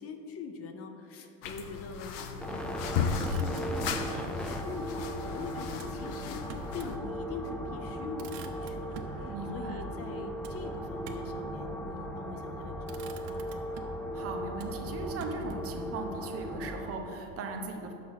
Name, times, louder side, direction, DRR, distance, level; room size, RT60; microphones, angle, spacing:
voice 1, 0.0-6.5 6.7-13.8, left 5 dB, 40° left, 6 dB, 0.7 m, -43 dB
sound 1, 1.4-7.0, left 6 dB, 70° left, 0.8 m, -36 dB
sound 2, 2.4-16.9, equal, 5° left, 0.4 m, -37 dB
Motor vehicle (road), 3.1-4.2 5.7-7.0 7.4-7.5 7.8-9.2 10.4-11.4 12.3-12.5 12.8-14.1 14.6-15.8, right 7 dB, 70° right, 0.8 m, -49 dB
voice 2, 9.2-9.9 14.1-17.9, right 2 dB, 40° right, 3 dB, 0.9 m, -38 dB
6.2 x 5.8 x 6.4 m, 2.8 s
cardioid pair, 140°, 35 cm